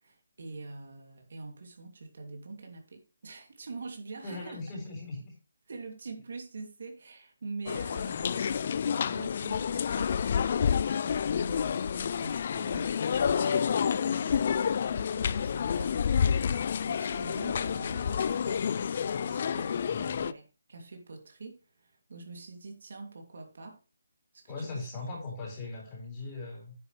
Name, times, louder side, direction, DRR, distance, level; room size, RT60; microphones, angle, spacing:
voice 1, 0.0-4.6 5.7-16.4 16.8-23.8 24.3-24.9, right 3 dB, 60° right, 3 dB, 2.7 m, -45 dB
voice 2, 4.2-5.3 19.2-20.2 24.5-26.7, left 3 dB, 20° left, -2 dB, 4.4 m, -40 dB
sound 1, 7.7-20.3, left 7 dB, 40° left, 0.3 m, -29 dB
9.6 x 8.2 x 3.3 m, 0.32 s
hypercardioid pair, 165°, 0 cm